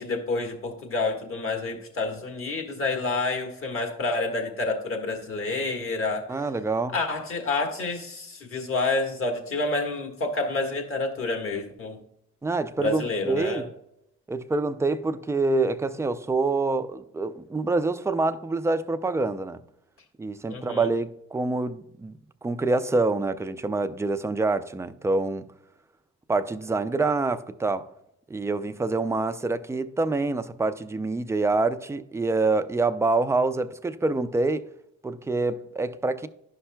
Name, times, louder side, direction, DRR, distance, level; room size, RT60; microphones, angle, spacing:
voice 1, 0.0-6.3 6.9-12.0 12.8-13.6 20.5-20.9, left 3 dB, 45° left, 1.6 m, -28 dB
voice 2, 6.3-6.9 12.4-13.7 14.3-19.6 20.2-22.1 22.4-25.5 26.3-27.9 28.3-34.7 35.0-36.3, right 3 dB, 10° right, 0.4 m, -26 dB
11.0 x 5.6 x 2.2 m
cardioid pair, 90°, 30 cm